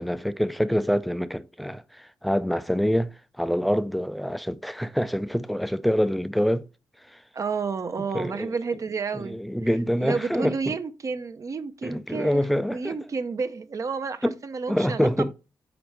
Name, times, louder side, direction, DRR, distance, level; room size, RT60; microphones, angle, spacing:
voice 1, 0.0-6.7 7.1-7.2 8.1-8.5 9.1-10.7 11.8-13.0 14.2-14.3 14.7-15.3, equal, ahead, 0.4 m, -26 dB
voice 2, 7.3-9.4 10.0-12.4 12.7-15.3, right 5 dB, 45° right, 0.6 m, -30 dB
5.1 x 4.2 x 4.6 m
cardioid pair, 90°, 8 cm